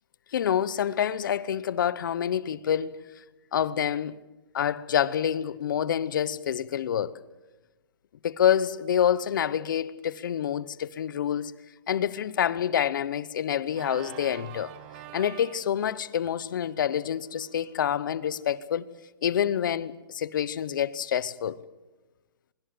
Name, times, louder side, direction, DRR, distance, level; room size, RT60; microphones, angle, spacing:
voice 1, 0.3-3.0 3.5-4.2 4.5-7.1 8.2-11.5 11.9-14.7 15.1-18.8 19.2-21.6, left 9 dB, 55° left, 0.9 m, -27 dB
Organ, 13.7-18.5, right 12 dB, 25° right, 1.0 m, -48 dB
23.0 x 22.5 x 7.8 m
hypercardioid pair, 175°, 13 cm